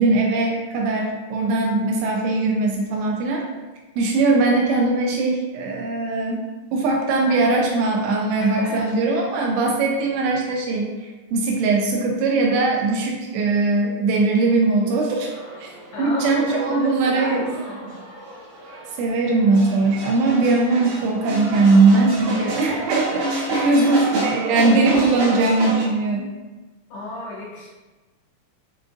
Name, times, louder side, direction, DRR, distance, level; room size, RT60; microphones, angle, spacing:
voice 1, 0.0-3.4 4.0-6.5 6.7-15.3 15.6-15.7 16.0-17.6 19.0-26.3, right 3 dB, 85° right, 0 dB, 2.6 m, -20 dB
voice 2, 8.4-9.3 15.9-17.9 23.5-24.1 26.9-27.7, left 1 dB, 80° left, -4 dB, 2.5 m, -33 dB
sound 1, 15.2-25.8, right 1 dB, 70° right, 1.9 m, -30 dB
7.4 x 2.5 x 2.4 m, 1.2 s
omnidirectional pair, 5.2 m